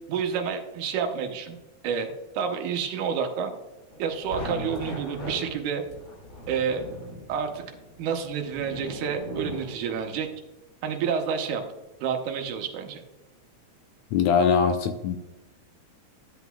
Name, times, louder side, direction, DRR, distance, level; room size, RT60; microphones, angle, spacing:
voice 1, 0.1-1.6 1.8-3.5 4.0-5.8 6.5-6.8 7.3-7.6 8.0-10.3 10.8-11.6 12.0-13.0, right 7 dB, 85° right, 4 dB, 2.3 m, -29 dB
sound 1, 3.9-10.2, left 1 dB, 40° left, 2.9 m, -39 dB
voice 2, 14.1-15.2, left 6 dB, 80° left, 7 dB, 1.6 m, -22 dB
12.0 x 8.1 x 2.3 m, 1.1 s
omnidirectional pair, 3.4 m